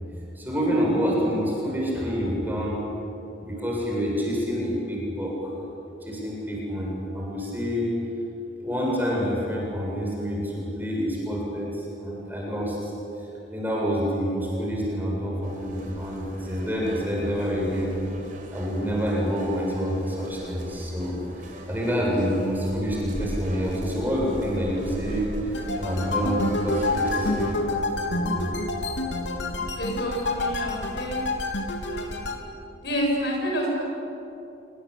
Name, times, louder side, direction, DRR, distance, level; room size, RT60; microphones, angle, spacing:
voice 1, 0.4-2.8 3.4-5.5 6.0-7.9 8.6-12.9 13.5-17.9 18.5-27.6 28.1-28.6, equal, 10° right, -3 dB, 7.7 m, -27 dB
sound 1, 15.4-27.5, equal, 45° right, 5.4 m, -40 dB
sound 2, 25.5-32.4, left 2 dB, 80° left, 3.0 m, -28 dB
voice 2, 29.8-31.2 31.8-32.3 32.8-33.8, equal, 65° left, 0 dB, 7.9 m, -29 dB
27.0 x 25.5 x 8.6 m, 2.9 s
head